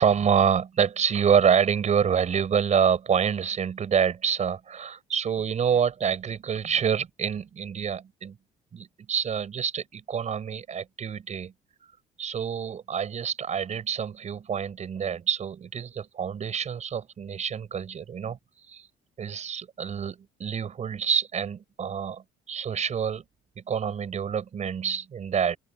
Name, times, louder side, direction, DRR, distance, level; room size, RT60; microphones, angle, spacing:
voice 1, 0.0-8.4 8.7-11.5 12.2-18.4 18.7-18.9 19.2-23.2 23.6-25.6, right 7 dB, 45° right, 6.2 m, -27 dB
cardioid pair, 110°, 17 cm